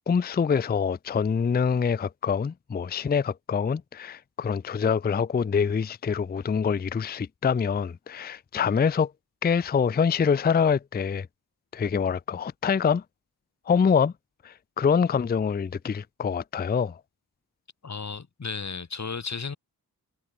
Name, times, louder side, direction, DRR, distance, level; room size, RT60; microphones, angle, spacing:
voice 1, 0.1-9.1 9.4-11.3 11.7-13.0 13.7-14.1 14.4-17.0, left 6 dB, 25° left, 0.4 m, -25 dB
voice 2, 17.8-19.6, left 5 dB, 45° left, 2.0 m, -34 dB
wide cardioid pair, 125°, 38 cm